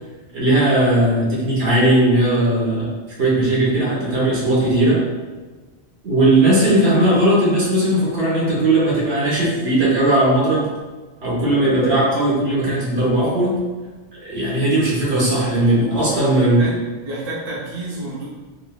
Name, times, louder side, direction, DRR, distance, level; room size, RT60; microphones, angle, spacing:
voice 1, 0.3-2.9 3.2-5.0 6.0-10.7 11.2-13.5 14.2-16.7, right 1 dB, 75° right, -6 dB, 1.2 m, -17 dB
voice 2, 15.8-16.8 17.1-18.3, right 1 dB, 45° right, -5 dB, 0.7 m, -28 dB
3.7 x 2.4 x 2.2 m, 1.3 s
omnidirectional pair, 1.1 m